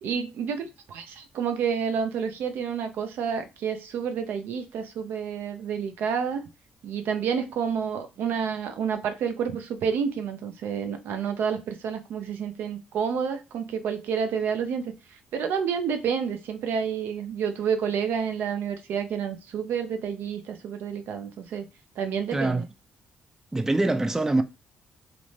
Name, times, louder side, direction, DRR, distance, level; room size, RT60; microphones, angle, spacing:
voice 1, 0.0-6.4 6.8-21.7 22.0-22.6, right 7 dB, 75° right, 0.4 m, -29 dB
voice 2, 22.3-22.7 23.5-24.4, right 2 dB, 15° right, 0.3 m, -24 dB
2.5 x 2.1 x 3.0 m
supercardioid pair, 70°, 3 cm